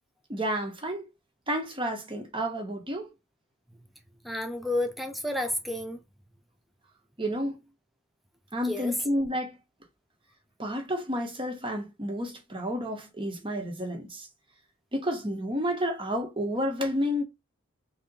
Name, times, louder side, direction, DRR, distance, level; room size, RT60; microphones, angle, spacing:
voice 1, 0.3-1.0 1.5-3.1 7.2-7.6 8.5-9.6 10.6-14.3 14.9-17.2, equal, 25° right, 1.0 m, -30 dB
voice 2, 4.2-6.0 8.6-9.0, left 1 dB, ahead, 0.5 m, -31 dB
3.4 x 2.8 x 3.9 m
head